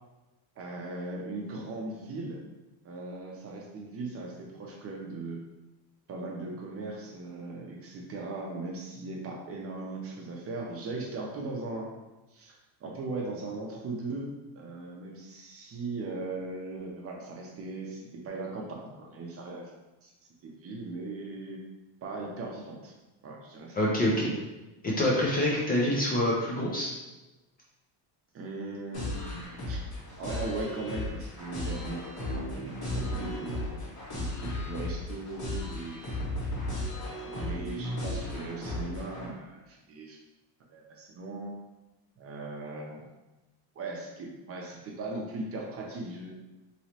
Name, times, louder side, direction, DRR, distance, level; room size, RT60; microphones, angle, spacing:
voice 1, 0.6-2.4 2.8-5.4 6.1-11.9 12.3-12.5 12.8-19.6 20.0-20.1 20.4-21.6 22.0-22.9 23.2-23.8 28.3-29.2 29.7-29.8 30.2-32.0 32.4-33.6 34.2-36.0 36.9-40.2 40.7-41.5 42.2-43.0 43.8-46.3, right 2 dB, 30° right, -1 dB, 0.6 m, -38 dB
voice 2, 23.7-24.3 24.8-26.9, left 1 dB, 20° left, -4 dB, 0.4 m, -26 dB
sound 1, 28.9-39.3, left 1 dB, 40° left, 1.5 m, -35 dB
3.1 x 3.0 x 2.8 m, 1.1 s
cardioid pair, 140°, 48 cm